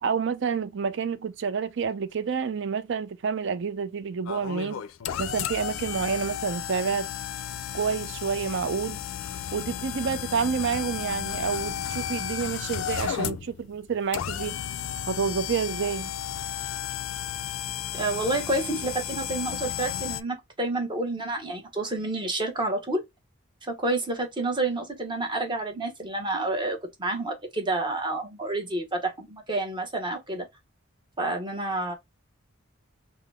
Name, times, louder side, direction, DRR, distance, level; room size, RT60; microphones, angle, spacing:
voice 1, 0.0-4.8 5.2-7.1 7.7-9.0 9.5-14.5 15.1-16.1, right 6 dB, 60° right, 0.5 m, -29 dB
sound 1, 4.3-20.2, left 10 dB, 80° left, 0.4 m, -33 dB
voice 2, 17.9-23.0 23.6-30.5 31.2-31.9, right 2 dB, 25° right, 0.9 m, -29 dB
3.8 x 2.0 x 3.3 m
head